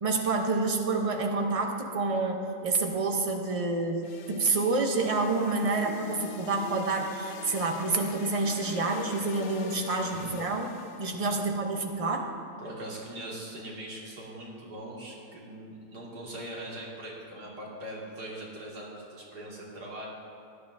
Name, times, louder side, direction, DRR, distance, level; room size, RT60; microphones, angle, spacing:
voice 1, 0.0-10.7 11.0-12.3, right 3 dB, 35° right, 3 dB, 0.6 m, -28 dB
sound 1, 4.0-11.1, left 6 dB, 80° left, 1.2 m, -43 dB
voice 2, 9.9-10.4 11.2-11.4 12.6-20.1, right 1 dB, 80° right, -4 dB, 2.6 m, -41 dB
17.5 x 10.5 x 2.6 m, 2.5 s
omnidirectional pair, 1.7 m